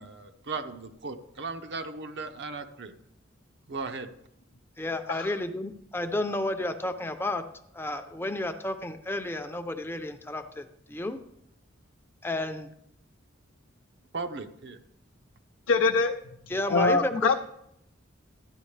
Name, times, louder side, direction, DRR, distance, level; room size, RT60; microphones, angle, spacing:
voice 1, 0.0-2.9 3.7-4.1 14.1-14.8, right 4 dB, 60° right, 7 dB, 0.7 m, -37 dB
voice 2, 4.8-7.4 7.7-11.2 12.2-12.7 16.5-17.3, left 1 dB, 10° left, 8 dB, 0.6 m, -31 dB
voice 3, 15.7-16.1 16.7-17.4, left 4 dB, 85° left, 4 dB, 0.6 m, -23 dB
13.5 x 9.8 x 3.3 m, 0.75 s
head